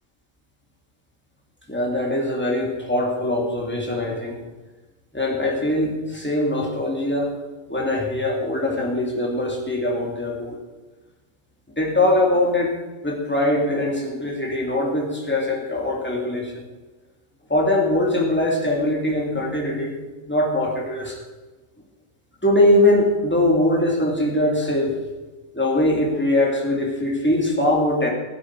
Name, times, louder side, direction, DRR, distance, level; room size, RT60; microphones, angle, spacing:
voice 1, 1.7-4.4 5.1-7.4 7.7-10.6 11.8-12.7 13.0-16.6 17.5-20.0 20.3-21.2 22.4-24.9 25.5-28.1, left 1 dB, 10° left, -1 dB, 2.6 m, -22 dB
16.5 x 9.9 x 4.7 m, 1.2 s
omnidirectional pair, 1.4 m